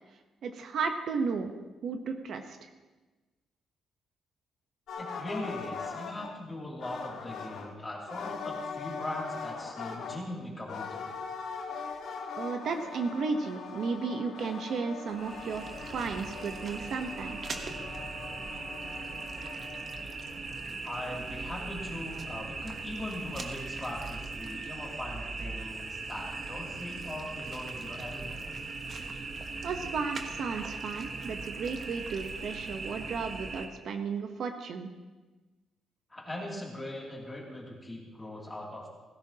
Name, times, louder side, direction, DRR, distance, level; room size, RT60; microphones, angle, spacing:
voice 1, 0.4-1.5 1.8-2.7 12.4-17.4 29.6-34.9, right 5 dB, 55° right, 5 dB, 1.0 m, -34 dB
sound 1, 4.9-6.3 6.8-7.7 8.1-10.2 10.7-20.4, left 5 dB, 75° left, 1.7 m, -41 dB
voice 2, 5.0-11.1 20.8-28.4 36.1-38.9, left 1 dB, 15° left, -3 dB, 2.7 m, -40 dB
sound 2, 15.1-33.7, right 3 dB, 35° right, 1.1 m, -39 dB
17.0 x 15.5 x 2.9 m, 1.2 s
cardioid pair, 155°, 0 cm